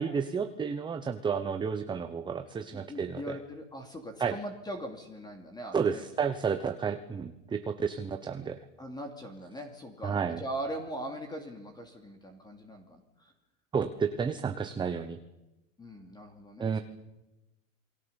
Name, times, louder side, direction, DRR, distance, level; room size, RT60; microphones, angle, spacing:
voice 1, 0.0-3.4 4.2-4.4 5.7-8.6 10.0-10.4 13.7-15.2 16.6-16.8, right 6 dB, 10° right, 8 dB, 0.9 m, -31 dB
voice 2, 2.7-6.0 8.8-13.3 15.8-16.7, right 1 dB, 10° left, 5 dB, 2.8 m, -40 dB
28.0 x 20.0 x 7.1 m, 1.0 s
supercardioid pair, 135°, 40 cm